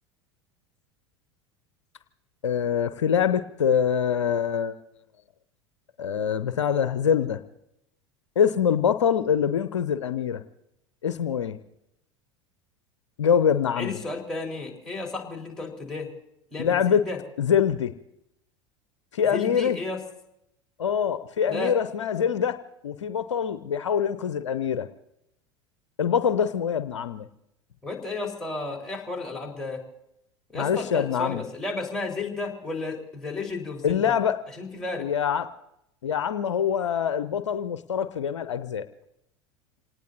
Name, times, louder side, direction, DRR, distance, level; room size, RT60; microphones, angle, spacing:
voice 1, 2.4-4.8 6.0-7.4 8.4-10.4 11.0-11.6 13.2-14.0 16.6-17.0 17.4-17.9 19.1-19.8 20.8-22.6 22.8-24.9 26.0-27.3 30.5-31.4 33.8-34.4 35.0-35.5 36.0-38.9, left 8 dB, 70° left, 11 dB, 0.7 m, -24 dB
voice 2, 13.8-16.1 16.5-17.2 19.3-20.0 21.5-21.8 27.8-29.8 30.5-34.1 34.6-35.1, left 3 dB, 5° left, -1 dB, 4.2 m, -33 dB
27.5 x 18.5 x 2.8 m, 0.81 s
figure-of-eight pair, 75°, 15 cm